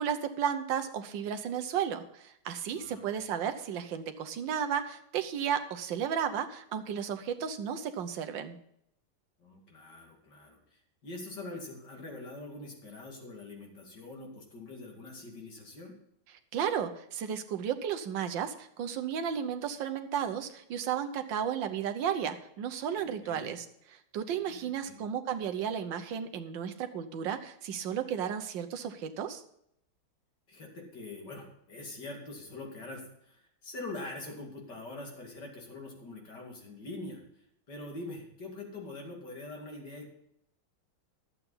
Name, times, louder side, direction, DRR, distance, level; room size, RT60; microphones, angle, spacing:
voice 1, 0.0-8.6 16.5-23.7 23.9-29.4, right 8 dB, 65° right, 7 dB, 1.5 m, -33 dB
voice 2, 2.7-3.1 9.4-15.9 23.0-23.5 24.5-25.0 30.5-37.2 37.7-40.1, left 2 dB, 55° left, 0 dB, 3.1 m, -44 dB
11.5 x 8.3 x 5.5 m, 0.75 s
omnidirectional pair, 2.3 m